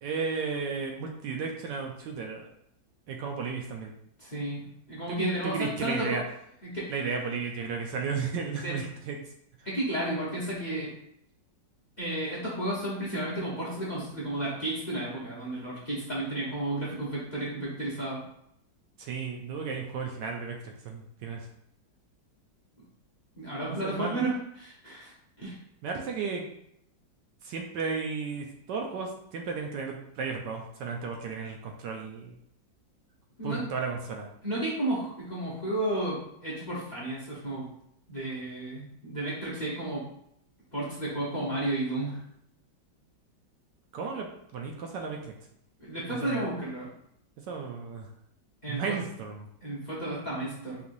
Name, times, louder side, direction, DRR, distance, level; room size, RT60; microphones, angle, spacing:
voice 1, 0.0-2.5 3.1-3.9 5.1-6.2 6.9-9.2 19.0-21.4 23.7-24.3 25.8-26.4 27.4-32.3 33.4-34.3 43.9-44.3 44.5-45.3 46.1-46.5 47.5-48.1 48.7-49.5, right 5 dB, 75° right, 2 dB, 1.2 m, -34 dB
voice 2, 4.2-6.1 6.6-6.9 8.6-8.8 9.6-10.9 12.0-18.2 23.4-25.1 25.4-25.6 33.4-33.6 34.4-37.7 38.1-40.0 40.7-42.2 45.8-46.9 48.6-49.0 49.6-50.8, right 1 dB, 30° left, -6 dB, 0.8 m, -32 dB
4.8 x 3.3 x 2.6 m, 0.74 s
omnidirectional pair, 2.1 m